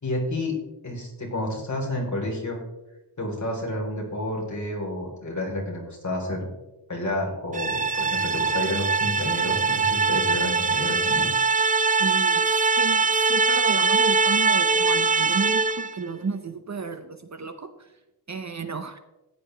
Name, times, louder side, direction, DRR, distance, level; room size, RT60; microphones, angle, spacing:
voice 1, 0.0-0.6 0.8-2.6 3.2-6.5 6.9-11.3, left 1 dB, 45° left, -1 dB, 4.0 m, -30 dB
sound 1, 7.5-16.0, right 4 dB, 20° right, 0.3 m, -22 dB
voice 2, 12.0-12.4 12.8-17.7 18.3-19.0, right 4 dB, 40° right, 9 dB, 0.8 m, -32 dB
14.5 x 10.5 x 3.4 m, 1.0 s
wide cardioid pair, 130°, 42 cm